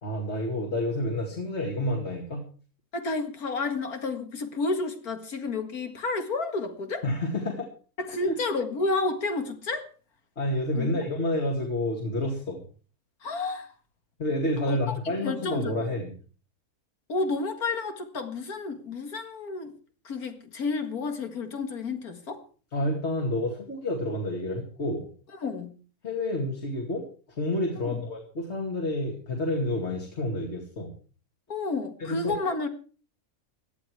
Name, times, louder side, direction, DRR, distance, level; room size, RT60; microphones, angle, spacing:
voice 1, 0.0-2.4 7.0-7.7 8.2-8.3 10.4-12.6 14.2-16.1 22.7-25.1 26.0-31.0 32.0-32.3, left 1 dB, 50° left, 2.5 m, -29 dB
voice 2, 2.9-7.0 8.0-9.9 10.7-10.9 13.2-13.7 14.6-15.8 17.1-19.7 20.0-22.4 25.4-25.8 27.8-28.0 31.5-32.7, left 3 dB, 85° left, 2.4 m, -31 dB
17.0 x 12.0 x 4.8 m
omnidirectional pair, 1.5 m